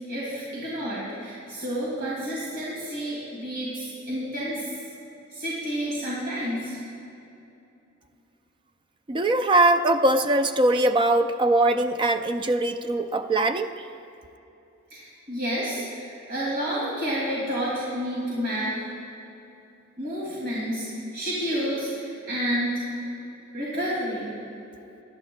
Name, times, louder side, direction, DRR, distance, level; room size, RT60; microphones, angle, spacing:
voice 1, 0.1-4.7 5.3-6.8 14.9-18.9 20.0-23.0 23.5-24.3, equal, 55° right, -7 dB, 2.6 m, -30 dB
voice 2, 9.1-13.7, right 2 dB, 25° right, 9 dB, 0.4 m, -21 dB
19.0 x 11.0 x 2.3 m, 2.8 s
head